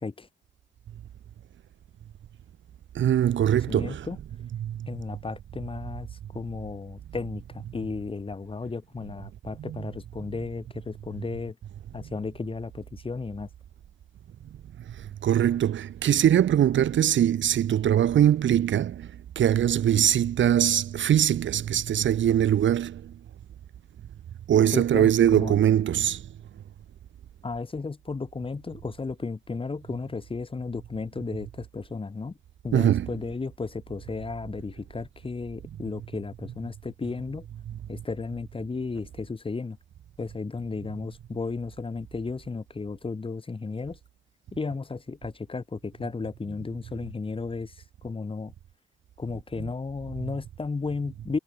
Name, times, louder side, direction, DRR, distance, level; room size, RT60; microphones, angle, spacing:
voice 1, 2.9-4.1 4.6-4.8 9.6-9.8 15.2-19.1 19.3-23.0 24.5-26.2 32.7-33.1, right 10 dB, 80° right, 1.7 m, -22 dB
voice 2, 3.7-4.2 4.9-11.6 11.9-13.5 24.7-25.6 27.4-32.4 32.6-37.5 37.9-39.8 40.2-44.0 44.5-48.5 49.2-51.4, left 4 dB, 30° left, 1.6 m, -34 dB
cardioid pair, 100°, 19 cm